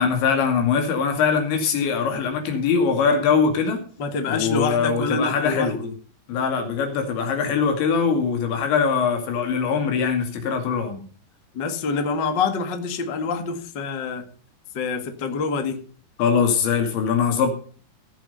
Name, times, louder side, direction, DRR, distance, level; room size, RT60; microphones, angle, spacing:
voice 1, 0.0-3.8 4.3-5.8 6.3-11.0 16.2-17.5, left 6 dB, 80° left, 5 dB, 4.8 m, -22 dB
voice 2, 4.0-5.9 11.5-14.2 14.7-15.8, left 4 dB, 45° left, 6 dB, 1.4 m, -26 dB
16.5 x 7.5 x 5.5 m, 0.42 s
omnidirectional pair, 5.2 m